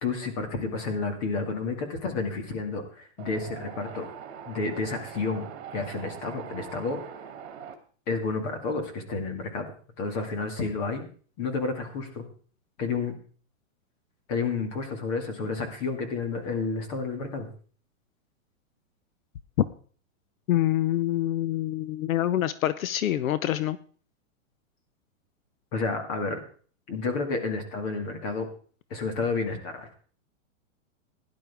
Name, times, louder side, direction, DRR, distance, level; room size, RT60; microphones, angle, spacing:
voice 1, 0.0-4.1 4.5-5.5 5.7-7.0 8.1-9.6 10.0-11.1 11.4-12.3 12.8-13.2 14.3-17.5 25.7-26.4 26.9-28.5 28.9-29.9, left 4 dB, 30° left, 5 dB, 2.2 m, -30 dB
Wind, 3.2-7.7, right 8 dB, 50° right, 2.4 m, -42 dB
voice 2, 20.5-23.8, left 13 dB, 80° left, 15 dB, 0.8 m, -26 dB
17.0 x 11.0 x 3.5 m, 0.43 s
hypercardioid pair, 170°, 40 cm